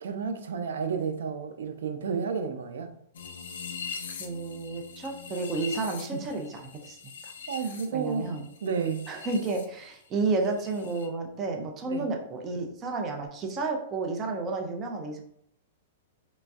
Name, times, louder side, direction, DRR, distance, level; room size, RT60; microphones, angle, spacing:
voice 1, 0.0-2.9 6.1-6.2 7.5-8.3 8.6-9.0 11.9-12.1, right 6 dB, 85° right, 7 dB, 0.4 m, -31 dB
sound 1, 3.1-9.7 9.9-11.1, left 6 dB, 80° left, 0.5 m, -42 dB
voice 2, 4.2-7.0 7.2-7.3 7.9-8.4 9.1-15.2, right 3 dB, 20° right, 2 dB, 0.3 m, -31 dB
3.0 x 2.5 x 2.3 m, 0.72 s
supercardioid pair, 175°, 0 cm